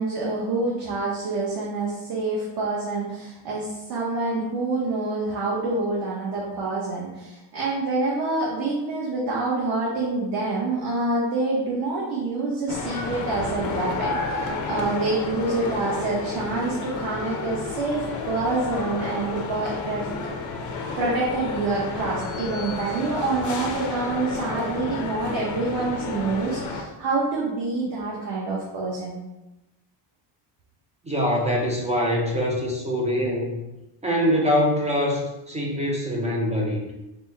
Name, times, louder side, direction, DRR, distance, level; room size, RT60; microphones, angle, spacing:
voice 1, 0.0-20.3 21.0-29.2, right 3 dB, 45° right, -5 dB, 0.9 m, -27 dB
sound 1, 12.7-26.8, left 4 dB, 40° left, 0.5 m, -31 dB
voice 2, 31.0-33.6 34.0-36.8, equal, 15° right, -2 dB, 0.3 m, -24 dB
4.1 x 2.1 x 4.4 m, 1.0 s
cardioid pair, 160°, 49 cm